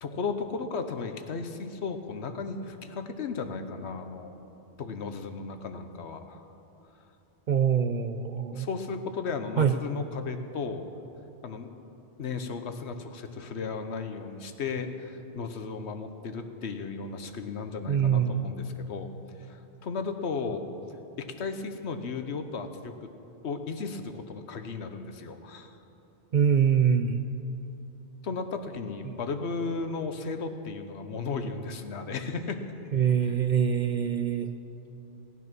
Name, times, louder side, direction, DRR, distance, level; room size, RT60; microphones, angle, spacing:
voice 1, 0.0-4.3 4.8-6.4 8.5-11.0 11.4-11.7 12.2-19.1 19.5-20.6 21.2-23.1 23.4-25.8 28.2-32.6, left 4 dB, 70° left, 8 dB, 1.1 m, -35 dB
voice 2, 7.5-8.7 9.6-9.8 17.9-18.5 26.3-27.2 29.1-29.2 32.9-34.5, right 7 dB, 60° right, 7 dB, 0.5 m, -24 dB
17.5 x 9.4 x 6.0 m, 2.9 s
omnidirectional pair, 1.2 m